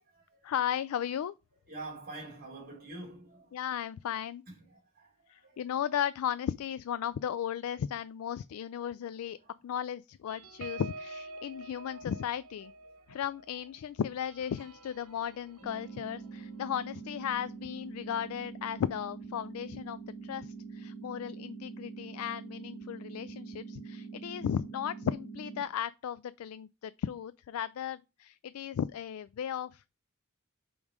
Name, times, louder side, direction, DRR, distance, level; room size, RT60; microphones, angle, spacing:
voice 1, 0.4-1.3 3.5-4.4 5.3-9.4 9.6-12.7 13.1-30.0, left 9 dB, 80° left, 0.3 m, -35 dB
voice 2, 1.7-3.6 4.5-4.6 5.0-5.6, right 2 dB, 45° right, 2.7 m, -45 dB
sound 1, 10.3-19.2 19.6-19.8 20.1-20.4, right 2 dB, 85° right, 1.1 m, -50 dB
sound 2, 15.6-25.6, right 4 dB, 15° left, 1.4 m, -44 dB
5.4 x 4.7 x 4.9 m
head